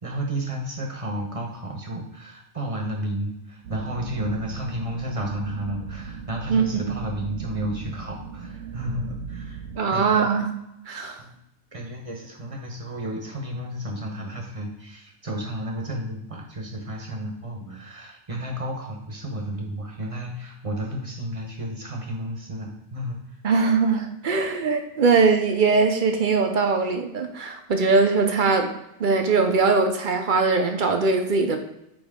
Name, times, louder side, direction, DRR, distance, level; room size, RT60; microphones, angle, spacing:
voice 1, 0.0-9.6 9.9-10.3 11.2-11.3 11.7-23.2, right 1 dB, 30° right, 0 dB, 0.9 m, -32 dB
sound 1, 3.6-9.8, right 6 dB, 80° right, 1.0 m, -38 dB
voice 2, 6.5-6.9 9.8-10.5 10.9-11.2 23.4-28.7 29.0-31.6, right 4 dB, 50° right, 5 dB, 0.7 m, -21 dB
8.7 x 3.1 x 3.6 m, 0.85 s
omnidirectional pair, 1.3 m